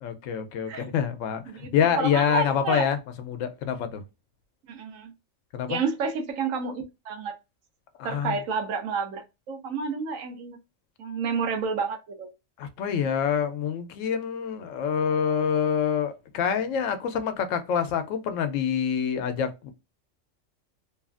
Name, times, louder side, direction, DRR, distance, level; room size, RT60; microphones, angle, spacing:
voice 1, 0.0-4.0 5.5-5.8 8.0-8.4 12.6-19.7, left 7 dB, 75° left, 0.9 m, -26 dB
voice 2, 1.5-2.9 4.7-5.1 5.7-7.4 8.0-10.6 11.0-12.3, right 5 dB, 80° right, 1.1 m, -30 dB
3.0 x 2.4 x 2.4 m
omnidirectional pair, 1.4 m